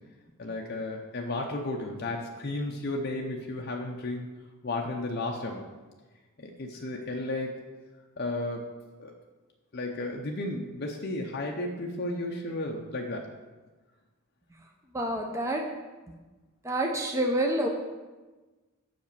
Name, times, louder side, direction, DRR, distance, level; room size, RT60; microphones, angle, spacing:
voice 1, 0.4-4.3 4.6-5.6 6.4-7.6 8.2-8.6 9.0-9.1 9.7-13.3, left 2 dB, 45° left, 0 dB, 0.6 m, -33 dB
voice 2, 14.9-15.6 16.6-17.7, right 1 dB, 15° right, 1 dB, 0.6 m, -27 dB
5.8 x 5.2 x 6.8 m, 1.2 s
head